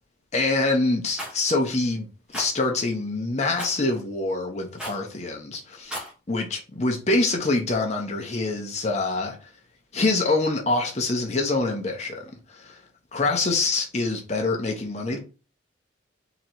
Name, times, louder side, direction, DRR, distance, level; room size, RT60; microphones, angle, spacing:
voice 1, 0.3-2.1 2.3-6.0 6.3-9.5 9.9-12.8 13.1-15.2, left 2 dB, 35° left, 0.8 m, -25 dB
Rattle, 1.2-1.4 2.3-2.5 3.6-3.8 4.8-5.1 5.8-6.1, equal, 5° right, 1.0 m, -34 dB
3.9 x 2.9 x 4.4 m
head